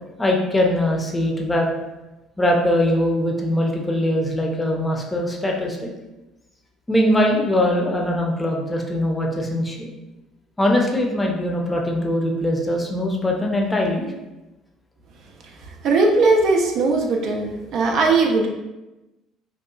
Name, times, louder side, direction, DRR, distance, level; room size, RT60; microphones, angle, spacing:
voice 1, 0.2-1.7 2.4-5.9 6.9-9.9 10.6-14.0, left 1 dB, 15° left, 0 dB, 0.5 m, -21 dB
voice 2, 15.8-18.5, right 3 dB, 50° right, 1 dB, 0.3 m, -18 dB
2.8 x 2.2 x 2.3 m, 1.0 s
figure-of-eight pair, 55°, 0 cm